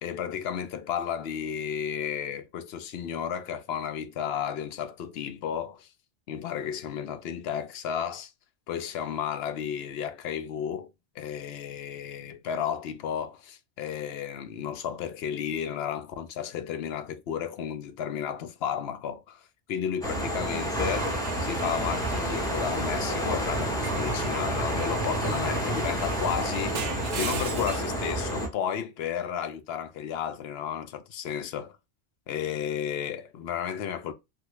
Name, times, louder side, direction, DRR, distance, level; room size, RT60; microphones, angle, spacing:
voice 1, 0.0-5.9 6.3-8.3 8.7-10.9 11.2-31.7 32.3-34.1, left 8 dB, 65° left, 0.7 m, -33 dB
sound 1, 20.0-28.5, right 1 dB, 5° left, 0.6 m, -29 dB
Car / Engine / Glass, 20.9-23.1 23.8-28.0, right 7 dB, 70° right, 0.4 m, -40 dB
3.3 x 2.2 x 2.9 m
omnidirectional pair, 1.3 m